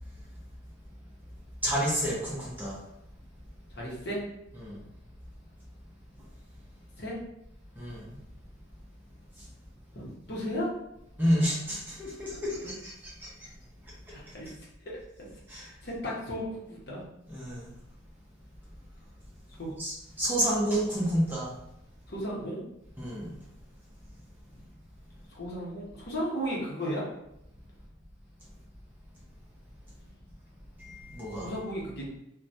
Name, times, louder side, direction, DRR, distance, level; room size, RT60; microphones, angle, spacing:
voice 1, 1.6-2.7 4.6-4.8 7.8-8.1 11.2-13.5 15.5-15.7 17.3-17.7 19.8-21.5 23.0-23.3 30.8-31.5, equal, 10° right, -6 dB, 0.5 m, -30 dB
voice 2, 3.7-4.2 7.0-7.2 9.9-10.7 12.6-12.7 14.1-14.5 14.8-15.0 15.5-17.0 19.6-19.7 22.1-22.6 25.3-27.0 31.4-32.1, equal, 50° left, -4 dB, 0.8 m, -35 dB
3.1 x 2.1 x 2.7 m, 0.82 s
head